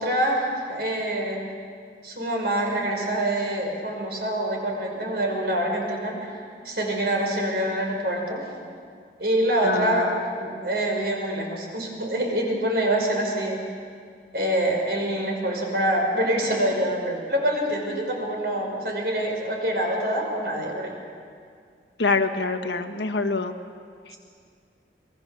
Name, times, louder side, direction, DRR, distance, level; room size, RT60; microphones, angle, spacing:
voice 1, 0.0-1.4 2.0-6.2 6.6-8.4 9.2-13.6 14.3-20.9, right 1 dB, 65° right, 1 dB, 5.7 m, -25 dB
voice 2, 9.6-10.2 22.0-23.5 24.1-24.2, left 3 dB, 85° left, 6 dB, 1.5 m, -25 dB
27.0 x 22.0 x 7.0 m, 2.2 s
head